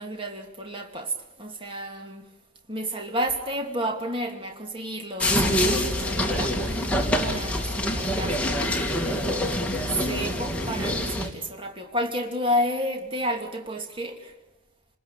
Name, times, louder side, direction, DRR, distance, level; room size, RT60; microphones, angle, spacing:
voice 1, 0.0-2.3 2.7-14.3, equal, 25° right, 2.5 m, -31 dB
sound 1, 5.2-11.3, equal, 5° left, 2.9 m, -25 dB
29.0 x 21.0 x 8.9 m
head